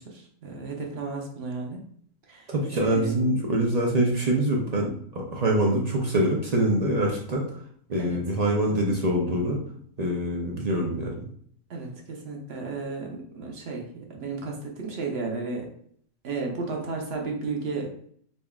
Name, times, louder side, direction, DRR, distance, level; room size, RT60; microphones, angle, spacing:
voice 1, 0.0-1.8 2.3-3.2 8.0-8.2 8.7-8.8 11.7-15.7 16.2-17.9, right 4 dB, 50° right, 0 dB, 0.9 m, -33 dB
voice 2, 2.5-7.4 7.9-9.6 10.0-11.2, right 1 dB, 70° right, -2 dB, 0.3 m, -24 dB
4.1 x 3.4 x 2.3 m, 0.62 s
omnidirectional pair, 1.5 m